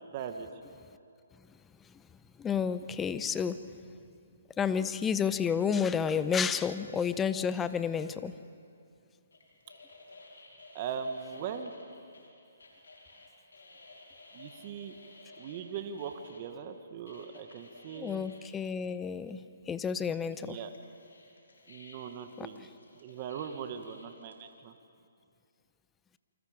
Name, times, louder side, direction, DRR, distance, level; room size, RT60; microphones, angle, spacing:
voice 1, 0.1-0.5 10.7-11.7 14.3-15.0 15.4-18.2 20.4-20.7 21.7-22.7 22.9-24.7, right 7 dB, 35° right, 6 dB, 1.5 m, -40 dB
voice 2, 2.4-3.7 4.6-8.3 17.9-20.6 22.4-22.5, left 7 dB, 10° left, 13 dB, 0.7 m, -31 dB
sound 1, 9.3-16.4 17.1-18.7 19.3-19.4 20.0-24.3, left 2 dB, 90° left, 5.9 m, -54 dB
28.5 x 25.5 x 5.1 m, 2.4 s
hypercardioid pair, 145°, 0 cm